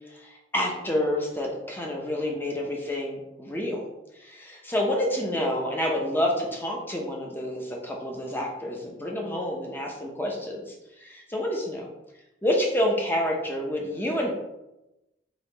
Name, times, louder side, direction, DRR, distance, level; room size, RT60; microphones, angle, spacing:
voice 1, 0.1-3.8 4.2-11.9 12.4-14.3, left 1 dB, 10° left, -1 dB, 0.7 m, -28 dB
4.0 x 2.9 x 4.0 m, 0.95 s
head